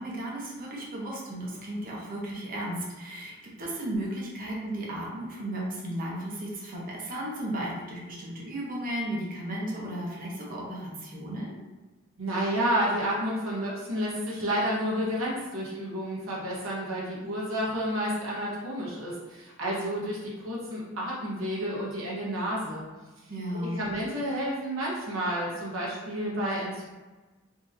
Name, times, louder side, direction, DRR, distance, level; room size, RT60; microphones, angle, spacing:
voice 1, 0.0-11.5 23.3-23.9, right 1 dB, 45° right, -4 dB, 0.9 m, -34 dB
voice 2, 12.2-22.8 23.6-26.8, equal, 80° right, -5 dB, 1.1 m, -30 dB
3.7 x 2.7 x 2.6 m, 1.2 s
head